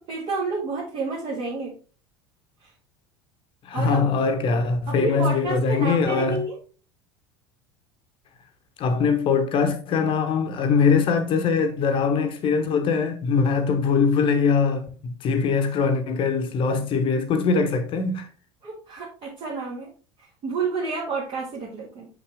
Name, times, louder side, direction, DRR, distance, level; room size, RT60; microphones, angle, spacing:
voice 1, 0.1-1.7 2.6-2.7 3.7-4.0 4.9-6.6 18.6-19.9 20.2-22.1, right 3 dB, 40° right, 1.9 m, -30 dB
voice 2, 3.6-6.4 8.8-18.3, left 5 dB, 40° left, 0.9 m, -22 dB
6.5 x 5.7 x 3.4 m
figure-of-eight pair, 70°, 14 cm